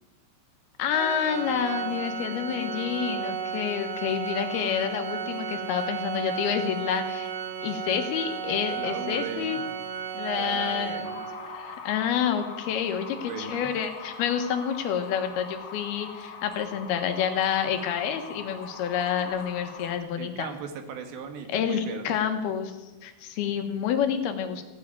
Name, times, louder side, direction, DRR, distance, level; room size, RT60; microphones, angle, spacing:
voice 1, 0.8-7.3 7.6-9.6 10.1-20.5 21.5-24.6, left 8 dB, 90° left, 7 dB, 3.3 m, -28 dB
Organ, 0.9-11.6, right 6 dB, 50° right, 2.3 m, -34 dB
voice 2, 8.8-9.6 10.4-11.3 13.1-13.7 20.2-22.2, right 6 dB, 80° right, 7 dB, 3.3 m, -38 dB
sound 1, 11.0-20.0, left 5 dB, 60° left, 1.1 m, -42 dB
16.0 x 7.6 x 9.5 m, 1.1 s
omnidirectional pair, 4.3 m